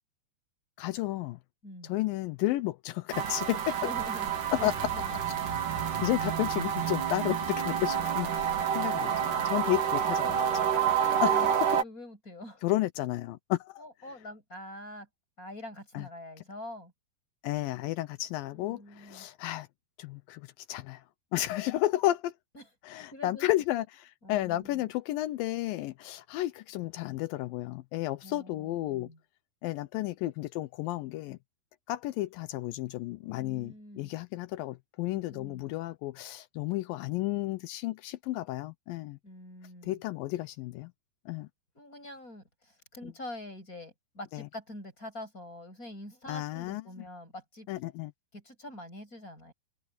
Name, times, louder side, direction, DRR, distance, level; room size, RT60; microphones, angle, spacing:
voice 1, 0.8-1.4 1.8-3.9 4.6-4.7 6.0-11.7 12.6-13.8 15.9-16.1 17.4-19.7 20.0-21.0 21.3-22.3 22.8-29.1 29.6-31.4 31.9-39.2 39.8-40.9 41.3-41.5 44.3-44.5 46.3-46.8 47.7-48.1, left 16 dB, 90° left, 2.1 m, -32 dB
voice 2, 1.6-1.9 3.7-5.2 11.1-12.6 13.8-15.1 15.4-16.9 18.5-19.3 22.5-22.7 23.1-23.5 24.2-24.9 28.2-29.2 33.3-34.1 35.1-35.7 39.2-40.0 41.7-47.7 48.3-49.5, left 1 dB, 20° left, 7.5 m, -45 dB
sound 1, 3.1-11.8, right 8 dB, 55° right, 3.9 m, -29 dB
omnidirectional pair, 4.8 m